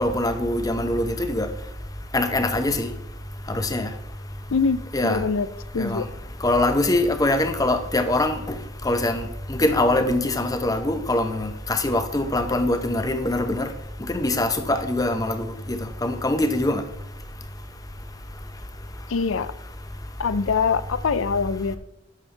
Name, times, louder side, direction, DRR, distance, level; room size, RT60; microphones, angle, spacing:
voice 1, 0.0-1.5 2.1-2.9 3.5-3.9 4.9-5.2 5.8-6.0 6.4-8.4 8.8-13.7 14.1-16.8, left 1 dB, 20° left, 0.7 m, -23 dB
voice 2, 4.5-5.5 5.7-6.1 19.1-19.5 20.2-21.8, left 5 dB, 75° left, 0.5 m, -24 dB
10.5 x 7.1 x 3.3 m
head